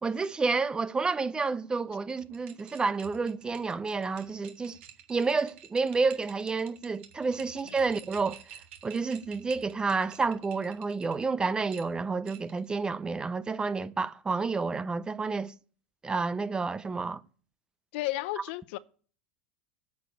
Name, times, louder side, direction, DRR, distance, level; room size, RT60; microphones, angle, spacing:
voice 1, 0.0-4.8 5.1-8.4 8.8-15.5 16.0-17.2, right 4 dB, 15° right, 0.4 m, -30 dB
sound 1, 2.1-11.2 11.7-12.7, right 9 dB, 80° right, 1.6 m, -50 dB
voice 2, 17.9-18.8, left 18 dB, 65° left, 0.6 m, -32 dB
9.2 x 6.6 x 8.3 m
supercardioid pair, 140°, 6 cm